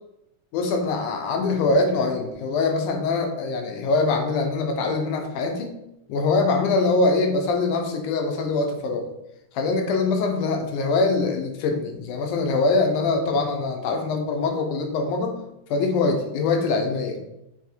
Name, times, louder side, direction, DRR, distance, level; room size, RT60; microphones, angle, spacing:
voice 1, 0.5-5.7 6.1-9.0 9.5-15.3 15.7-17.2, left 3 dB, 75° left, 4 dB, 2.4 m, -23 dB
7.1 x 3.9 x 4.5 m, 0.87 s
omnidirectional pair, 3.8 m